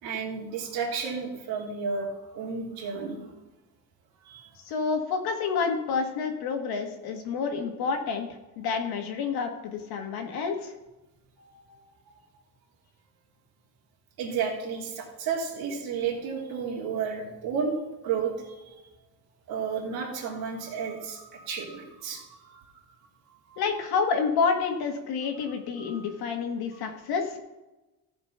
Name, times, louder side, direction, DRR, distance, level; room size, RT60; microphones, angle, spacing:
voice 1, 0.0-3.2 4.2-4.5 11.4-11.8 14.2-17.8 18.0-18.8 19.5-22.6 23.4-23.6 25.8-26.1, right 6 dB, 85° right, -2 dB, 2.6 m, -32 dB
voice 2, 4.7-8.3 8.6-10.7 23.6-27.4, left 5 dB, 90° left, 4 dB, 1.8 m, -29 dB
15.0 x 5.2 x 5.7 m, 1.1 s
cardioid pair, 150°, 36 cm